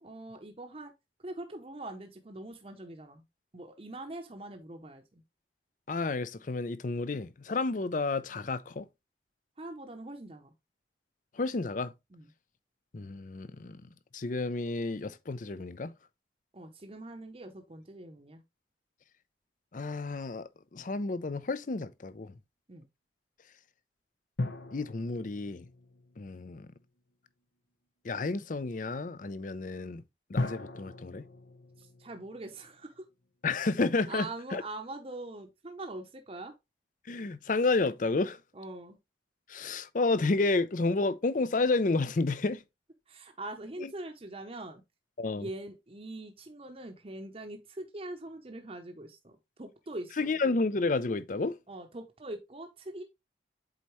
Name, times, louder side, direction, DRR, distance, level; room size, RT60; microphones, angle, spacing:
voice 1, 0.0-0.9 1.2-3.2 3.5-5.2 9.6-10.5 12.1-12.3 16.5-18.4 22.7-22.9 31.8-33.1 34.1-36.5 38.5-39.0 43.1-44.8 45.3-50.4 51.7-53.0, right 2 dB, 30° right, 0.8 m, -43 dB
voice 2, 5.9-8.9 11.3-11.9 12.9-13.8 14.1-15.9 19.7-22.3 24.7-25.7 26.2-26.7 28.0-30.0 30.3-31.3 33.4-34.3 34.5-34.6 37.1-38.4 39.5-42.6 43.8-43.9 45.2-45.5 50.2-51.6, left 3 dB, 45° left, 0.5 m, -31 dB
sound 1, 24.4-27.0 30.4-33.0 33.2-33.3, left 2 dB, 75° left, 1.0 m, -39 dB
7.9 x 4.2 x 3.0 m
head